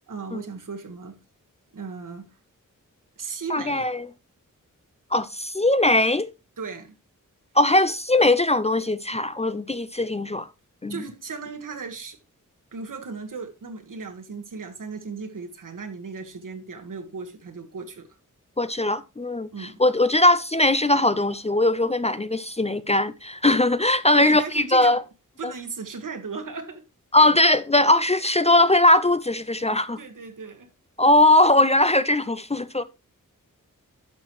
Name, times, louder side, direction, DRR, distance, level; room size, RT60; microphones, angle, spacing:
voice 1, 0.1-1.2 1.7-2.3 3.2-3.9 6.6-6.9 10.9-12.2 12.7-18.1 19.5-19.8 24.2-25.0 25.4-26.8 30.0-30.7, right 4 dB, 70° right, 1.7 m, -36 dB
voice 2, 3.5-4.1 5.1-6.3 7.6-10.5 10.8-11.0 18.6-25.0 25.4-25.5 27.1-30.0 31.0-32.8, left 2 dB, 20° left, 0.4 m, -20 dB
11.5 x 6.3 x 3.1 m
wide cardioid pair, 135°, 33 cm